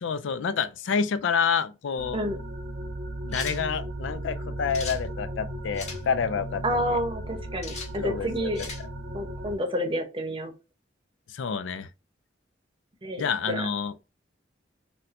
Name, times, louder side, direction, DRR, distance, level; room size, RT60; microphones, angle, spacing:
voice 1, 0.0-2.2 3.2-7.0 8.0-8.7 11.3-11.9 13.2-13.9, left 6 dB, 90° left, 0.4 m, -28 dB
sound 1, 2.0-9.6, right 1 dB, 60° right, 0.6 m, -36 dB
sound 2, 3.3-3.6 4.7-5.0 5.7-6.0 7.6-7.9 8.5-8.8, left 4 dB, 40° left, 1.3 m, -37 dB
voice 2, 6.6-8.6 9.1-10.5 13.0-13.7, equal, 30° right, 0.8 m, -29 dB
4.2 x 2.2 x 2.5 m
head